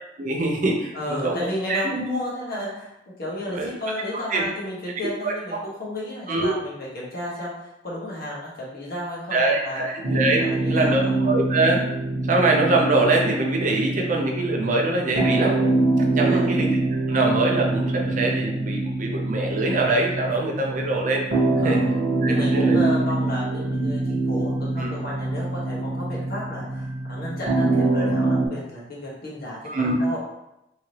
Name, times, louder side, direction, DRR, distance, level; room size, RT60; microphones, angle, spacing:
voice 1, 0.2-1.4 1.7-2.0 3.6-3.7 4.1-4.4 5.2-5.3 6.3-6.5 9.3-12.0 12.3-15.6 16.0-16.7 17.1-21.2 21.6-21.8 22.2-22.8 23.8-23.9 24.8-24.9 29.7-30.0, right 2 dB, 45° right, 0 dB, 0.5 m, -23 dB
voice 2, 0.9-2.9 3.2-9.9 10.4-11.1 12.2-12.5 16.1-16.5 20.4-20.7 21.6-22.0 22.2-30.2, left 1 dB, 55° left, -6 dB, 1.4 m, -33 dB
sound 1, 10.0-28.5, right 2 dB, 75° right, 1.2 m, -24 dB
3.6 x 3.1 x 2.9 m, 0.87 s
head